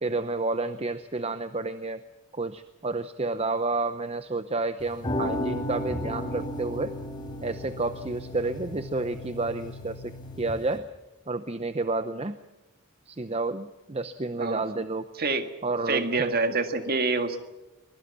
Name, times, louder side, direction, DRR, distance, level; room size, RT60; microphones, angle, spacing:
voice 1, 0.0-2.0 2.3-6.9 7.4-10.9 11.3-12.4 13.1-15.0 15.6-16.4, right 3 dB, 25° right, 11 dB, 0.7 m, -30 dB
sound 1, 4.8-10.8, left 1 dB, 20° left, 4.7 m, -34 dB
voice 2, 15.9-17.4, right 3 dB, 40° right, 8 dB, 1.9 m, -26 dB
23.0 x 21.0 x 7.2 m, 1.1 s
head